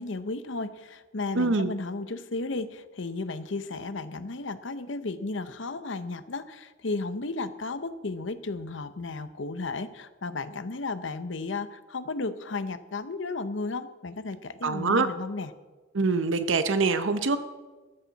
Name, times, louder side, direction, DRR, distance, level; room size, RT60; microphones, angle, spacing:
voice 1, 0.0-15.5, left 3 dB, 70° left, 12 dB, 0.8 m, -34 dB
voice 2, 1.3-1.7 14.6-15.1 15.9-17.4, right 4 dB, 75° right, 10 dB, 0.8 m, -24 dB
15.0 x 14.0 x 4.1 m, 1.3 s
head